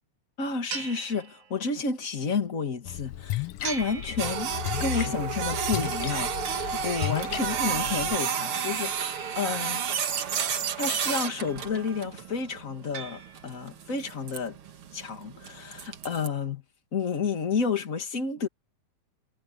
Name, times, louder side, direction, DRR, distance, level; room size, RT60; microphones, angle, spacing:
voice 1, 0.4-4.5 4.8-9.8 10.7-14.6 14.9-16.6 16.9-18.5, left 5 dB, 30° left, 2.2 m, -31 dB
sound 1, 0.7-1.9 3.6-4.9 6.5-7.2 8.5-9.7 11.3-12.0 12.9-13.8, right 5 dB, 65° right, 4.6 m, -42 dB
Splash splatter, 2.9-8.2, left 13 dB, 80° left, 1.3 m, -34 dB
Printer, 4.2-16.3, right 7 dB, 50° right, 2.0 m, -31 dB
omnidirectional pair, 3.6 m